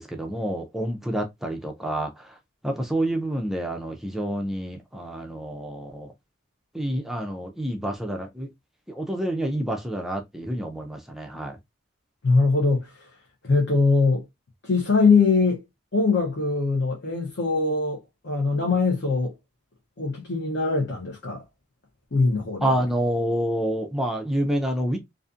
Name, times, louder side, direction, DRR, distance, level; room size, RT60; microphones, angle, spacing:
voice 1, 0.0-2.4 2.6-6.1 6.7-8.5 8.9-11.6 22.6-25.0, right 1 dB, ahead, 0.3 m, -28 dB
voice 2, 12.2-13.1 13.4-14.2 14.6-15.6 15.9-18.0 18.2-19.3 20.0-21.4 22.1-22.7, left 4 dB, 60° left, 0.7 m, -22 dB
2.5 x 2.4 x 2.4 m
head